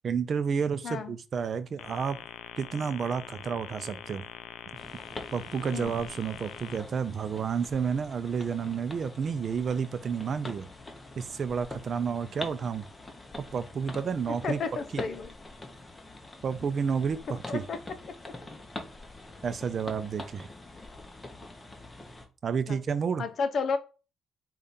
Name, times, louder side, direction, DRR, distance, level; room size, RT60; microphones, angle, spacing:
voice 1, 0.0-2.2 2.6-4.2 5.3-10.7 11.1-12.9 13.5-14.6 14.9-15.0 16.4-17.7 19.4-20.5 22.4-23.2, right 6 dB, 50° right, 0.5 m, -30 dB
sound 1, 1.8-6.8, left 10 dB, 85° left, 0.3 m, -44 dB
sound 2, 4.7-22.3, left 2 dB, 20° left, 0.9 m, -45 dB
voice 2, 14.4-15.3 17.5-17.8 22.7-22.8 23.2-23.8, left 5 dB, 55° left, 0.7 m, -31 dB
5.0 x 2.4 x 4.1 m
cardioid pair, 90°, 0 cm